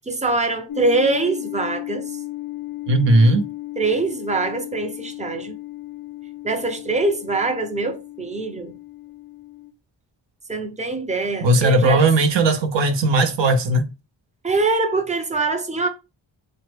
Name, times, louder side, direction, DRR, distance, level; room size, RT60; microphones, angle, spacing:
voice 1, 0.0-2.2 3.8-5.5 6.4-8.8 10.5-12.1 14.4-15.9, right 3 dB, 15° right, 0.6 m, -23 dB
sound 1, 0.7-9.7, left 17 dB, 55° left, 0.5 m, -35 dB
voice 2, 2.9-3.5 11.4-13.9, right 2 dB, 70° right, 0.7 m, -17 dB
3.0 x 2.2 x 3.2 m
cardioid pair, 70°, 45 cm